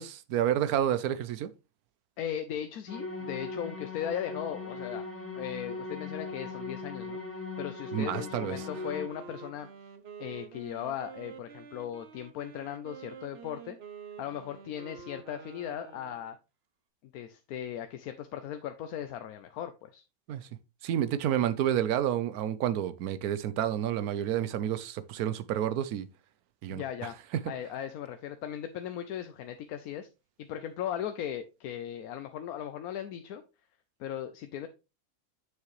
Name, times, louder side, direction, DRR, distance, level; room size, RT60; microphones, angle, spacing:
voice 1, 0.0-1.5 7.9-8.5 20.3-20.5 20.8-26.1 26.6-26.8, right 10 dB, 85° right, 1.2 m, -29 dB
voice 2, 2.2-5.0 5.3-7.2 7.6-9.7 10.2-13.8 14.2-16.4 17.1-20.0 26.7-27.1 27.5-30.1 30.4-33.4 34.0-34.7, left 10 dB, 80° left, 1.1 m, -37 dB
sound 1, 2.9-9.1, left 3 dB, 10° left, 1.9 m, -39 dB
Wind instrument woodwind instrument, 8.5-16.4, right 7 dB, 50° right, 1.0 m, -48 dB
7.4 x 6.4 x 3.1 m
omnidirectional pair, 1.6 m